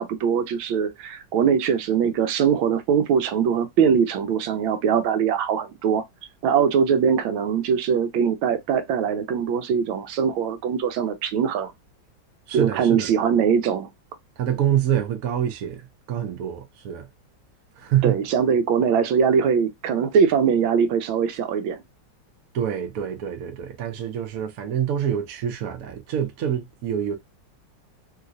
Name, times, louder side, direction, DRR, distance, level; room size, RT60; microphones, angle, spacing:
voice 1, 0.0-6.0 6.4-11.7 12.5-13.9 18.0-21.8, right 7 dB, 80° right, 1.3 m, -22 dB
voice 2, 12.5-13.1 14.4-17.1 17.8-18.2 22.5-27.2, right 10 dB, 60° right, 0.9 m, -26 dB
3.2 x 2.9 x 2.5 m
omnidirectional pair, 2.2 m